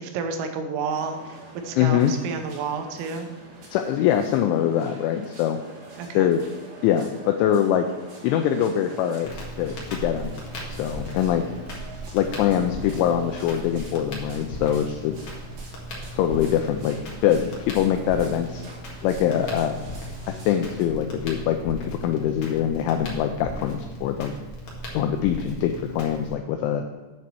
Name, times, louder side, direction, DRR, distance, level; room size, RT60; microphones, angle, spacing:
voice 1, 0.0-1.4 1.7-3.3 6.0-6.3, right 5 dB, 85° right, 6 dB, 3.6 m, -30 dB
sound 1, 0.9-20.8, right 3 dB, 55° right, 3.6 m, -46 dB
voice 2, 1.8-2.1 3.7-5.6 6.1-6.4 6.8-7.9 8.2-9.3 9.6-10.3 10.7-11.4 12.1-15.2 16.1-17.0 17.2-18.6 19.0-19.8 20.3-24.3 24.9-26.8, left 10 dB, 80° left, 6 dB, 2.8 m, -23 dB
Crackle, 9.2-26.3, equal, 65° left, 1.4 m, -37 dB
8.5 x 6.8 x 6.2 m, 1.3 s
omnidirectional pair, 5.8 m